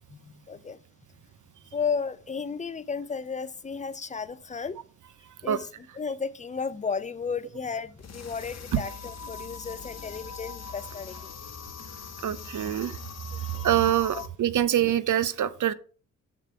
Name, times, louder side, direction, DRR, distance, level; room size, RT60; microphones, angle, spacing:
voice 1, 0.5-0.8 1.7-4.8 5.4-5.7 6.0-11.3 13.5-13.6 14.1-14.2, left 5 dB, 15° left, 0.6 m, -33 dB
sound 1, 8.0-14.3, left 5 dB, 35° left, 1.2 m, -41 dB
voice 2, 12.2-13.0 13.6-15.7, right 11 dB, 40° right, 0.7 m, -24 dB
7.2 x 6.7 x 4.5 m
hypercardioid pair, 45°, 46 cm